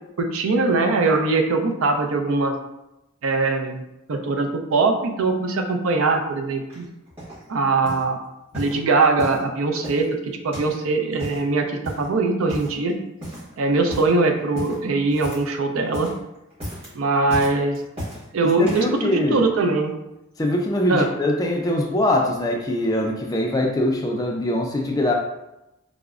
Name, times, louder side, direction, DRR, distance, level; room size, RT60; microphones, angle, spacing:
voice 1, 0.2-2.5 3.2-3.8 4.1-6.8 7.5-8.2 8.5-13.0 13.6-16.1 16.9-17.8 18.3-19.9 20.9-21.1, right 3 dB, 80° right, 4 dB, 0.4 m, -21 dB
sound 1, 6.7-7.4 7.8-8.1 8.5-9.5 9.8-10.8 11.1-11.5 11.8-12.1 12.5-12.9 13.2-13.5 13.8-14.1 14.5-15.6 15.8-16.2 16.5-16.9 17.3-18.2 18.6-19.0 19.7-19.8, equal, 30° right, 1.2 m, -35 dB
voice 2, 18.4-19.5 20.4-25.1, left 1 dB, 20° left, 1 dB, 0.3 m, -22 dB
4.8 x 2.0 x 2.3 m, 0.92 s
head